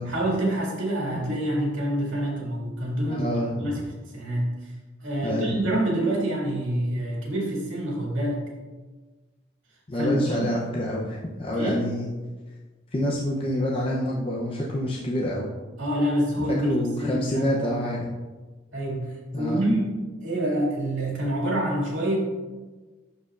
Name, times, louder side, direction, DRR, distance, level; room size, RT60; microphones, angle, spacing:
voice 1, 0.0-3.3 3.6-3.9 4.1-4.5 5.0-8.4 9.9-10.5 11.6-11.8 15.8-17.5 18.7-19.1 19.4-22.2, right 1 dB, 85° right, -4 dB, 2.2 m, -26 dB
voice 2, 3.1-3.5 5.2-5.6 9.9-12.1 12.9-15.5 16.6-18.1 19.3-19.6, equal, 30° left, -3 dB, 0.6 m, -27 dB
11.5 x 4.5 x 2.4 m, 1.3 s
head